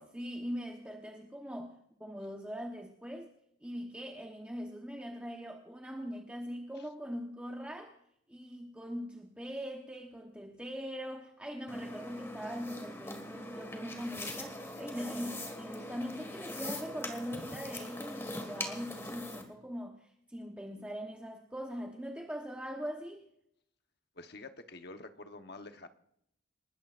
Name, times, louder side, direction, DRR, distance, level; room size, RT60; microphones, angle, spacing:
voice 1, 0.1-1.7 2.0-3.3 3.6-7.9 8.3-23.2, equal, 5° right, 1.0 m, -41 dB
sound 1, 11.7-19.4, left 1 dB, 15° left, 1.8 m, -42 dB
voice 2, 24.1-25.9, left 2 dB, 50° left, 1.0 m, -48 dB
28.5 x 13.5 x 2.5 m
head